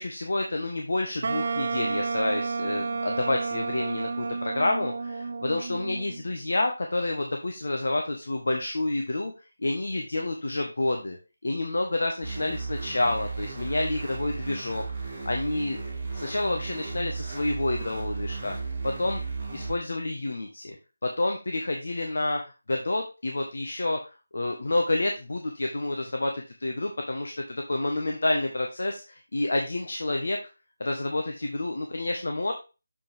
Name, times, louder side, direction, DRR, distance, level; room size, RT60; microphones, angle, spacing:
voice 1, 0.0-9.3 9.6-15.8 16.1-18.6 18.8-19.2 19.5-20.8 21.0-30.4 30.8-32.5, left 2 dB, 65° left, 3 dB, 1.2 m, -29 dB
Wind instrument woodwind instrument, 1.2-6.2, right 4 dB, 40° right, 0.4 m, -31 dB
sound 1, 12.2-19.7, right 4 dB, 15° right, 1.9 m, -35 dB
7.1 x 5.3 x 3.4 m, 0.30 s
figure-of-eight pair, 175°, 0 cm